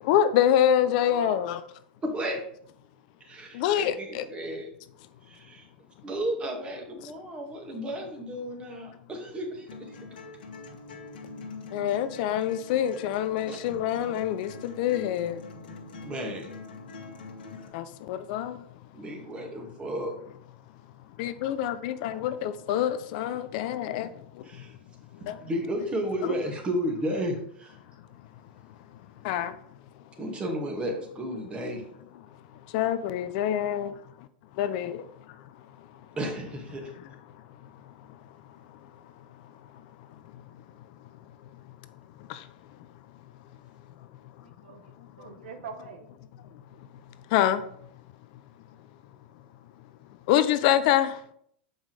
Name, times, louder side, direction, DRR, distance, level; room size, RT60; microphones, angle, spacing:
voice 1, 0.0-1.6 3.5-4.3 11.7-15.4 17.7-18.6 21.2-24.7 25.3-25.4 26.2-26.4 29.2-29.5 32.7-34.3 34.5-35.4 35.8-35.9 38.0-38.1 38.7-38.9 40.3-40.4 42.2-42.5 44.4-44.5 45.2-45.3 46.5-46.6 47.3-47.6 50.3-51.2, left 10 dB, 55° left, 0.5 m, -26 dB
voice 2, 0.8-1.5 44.4-46.1, right 6 dB, 75° right, 0.9 m, -43 dB
voice 3, 2.0-2.4 3.2-4.7 5.3-5.7 6.0-10.0 13.5-13.6 16.0-16.5 18.9-20.1 24.4-24.8 25.2-27.8 30.2-31.8 36.2-36.9, equal, 20° right, 1.9 m, -33 dB
sound 1, 9.7-17.7, left 3 dB, 75° left, 1.5 m, -43 dB
7.1 x 5.3 x 3.2 m
hypercardioid pair, 105°, 5 cm